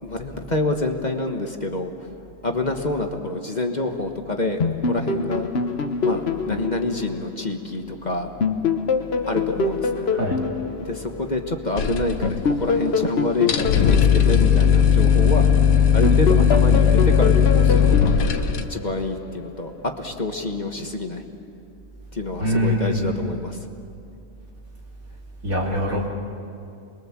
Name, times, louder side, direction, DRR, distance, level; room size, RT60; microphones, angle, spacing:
voice 1, 0.0-1.9 2.4-4.6 4.9-5.5 6.0-8.3 9.3-10.1 10.8-15.5 15.9-18.1 18.6-21.2 22.1-23.6, left 2 dB, 35° left, 4 dB, 1.5 m, -27 dB
sound 1, 4.6-7.9 8.4-11.7 12.2-15.5 16.0-19.3, left 4 dB, 50° left, 1.2 m, -25 dB
sound 2, 11.8-12.8 13.0-13.1 13.4-18.6, left 8 dB, 90° left, 1.5 m, -17 dB
voice 2, 22.4-23.1 25.4-26.1, equal, 80° right, -2 dB, 3.8 m, -23 dB
28.5 x 22.0 x 7.4 m, 2.6 s
omnidirectional pair, 1.4 m